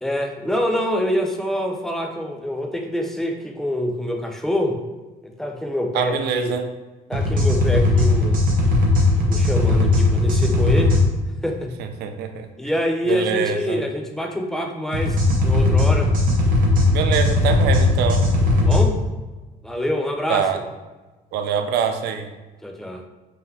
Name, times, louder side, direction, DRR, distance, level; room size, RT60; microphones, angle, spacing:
voice 1, 0.0-4.8 5.2-6.5 7.1-8.4 9.3-11.0 11.4-11.7 12.6-16.1 18.5-19.0 19.6-20.5 22.6-23.1, left 1 dB, ahead, 3 dB, 0.5 m, -25 dB
voice 2, 5.9-6.7 11.8-12.5 13.1-13.8 16.9-18.3 20.3-20.6 21.3-22.3, right 7 dB, 75° right, 7 dB, 0.5 m, -24 dB
sound 1, 7.1-11.0 14.9-18.8, left 2 dB, 55° right, 1.0 m, -18 dB
3.8 x 3.3 x 2.8 m, 1.2 s
cardioid pair, 110°, 17 cm